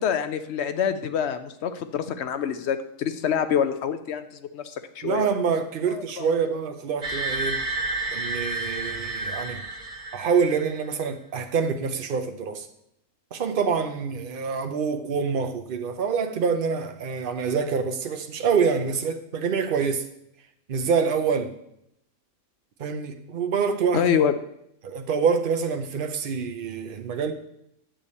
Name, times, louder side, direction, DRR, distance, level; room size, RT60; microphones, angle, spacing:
voice 1, 0.0-5.3 5.9-6.3 23.9-24.3, left 8 dB, 60° left, 10 dB, 0.8 m, -26 dB
voice 2, 5.0-7.6 8.1-9.6 10.1-12.7 13.3-20.1 20.7-21.5 22.8-24.1 24.8-27.3, right 6 dB, 45° right, 7 dB, 0.8 m, -26 dB
sound 1, 7.0-10.8, right 2 dB, 70° right, 1.6 m, -30 dB
8.9 x 6.7 x 4.2 m, 0.77 s
omnidirectional pair, 1.5 m